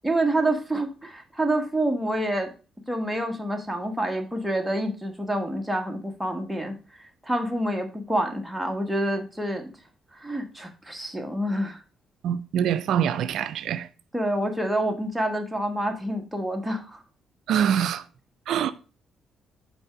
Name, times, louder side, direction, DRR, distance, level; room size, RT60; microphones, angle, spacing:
voice 1, 0.0-2.5 2.9-6.8 7.2-9.7 10.1-11.8 14.1-17.0, right 1 dB, 5° right, 1.4 m, -27 dB
voice 2, 12.2-13.9 17.5-18.0 18.5-18.7, right 9 dB, 75° right, 0.4 m, -24 dB
5.3 x 4.4 x 5.9 m
cardioid pair, 90°, 0 cm